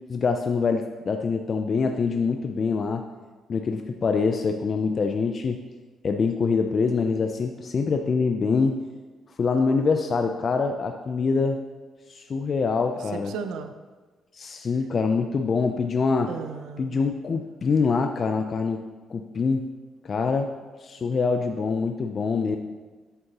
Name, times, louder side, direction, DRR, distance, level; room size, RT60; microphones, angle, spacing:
voice 1, 0.1-3.0 3.5-5.6 6.0-8.8 9.4-11.6 12.1-13.3 14.3-16.3 16.8-18.8 19.1-19.6 20.0-20.5 20.8-22.6, left 4 dB, 45° left, 5 dB, 0.4 m, -24 dB
voice 2, 13.0-13.7 16.3-17.0, right 6 dB, 85° right, 8 dB, 0.5 m, -35 dB
8.0 x 7.6 x 2.9 m, 1.3 s
cardioid pair, 90°, 0 cm